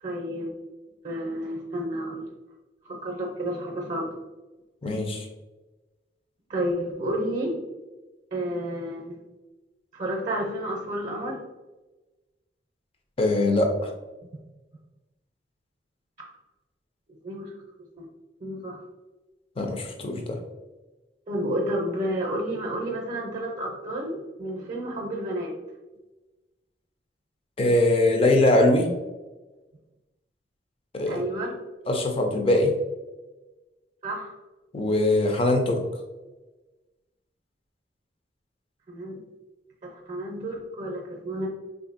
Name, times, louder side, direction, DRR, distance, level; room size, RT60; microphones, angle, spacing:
voice 1, 0.0-0.5 1.0-2.3 2.8-4.1 6.5-7.6 8.3-9.2 9.9-11.4 17.2-17.6 18.0-18.1 18.4-18.8 21.3-25.6 31.1-31.6 34.0-34.3 38.9-39.2 39.8-41.5, right 1 dB, 40° right, 0 dB, 0.6 m, -31 dB
voice 2, 4.8-5.3 13.2-13.9 19.6-20.4 27.6-28.9 30.9-31.2 31.9-32.7 34.7-35.8, left 2 dB, 35° left, 3 dB, 0.5 m, -22 dB
3.7 x 2.6 x 2.5 m, 1.1 s
head